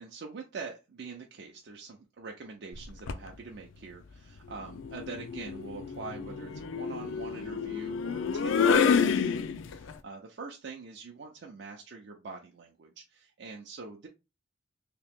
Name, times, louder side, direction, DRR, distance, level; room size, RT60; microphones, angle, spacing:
voice 1, 0.0-14.1, right 4 dB, 60° right, 1 dB, 0.5 m, -44 dB
sound 1, 2.7-3.3 4.6-9.9, left 6 dB, 80° left, 0.4 m, -29 dB
2.9 x 2.8 x 3.5 m, 0.27 s
head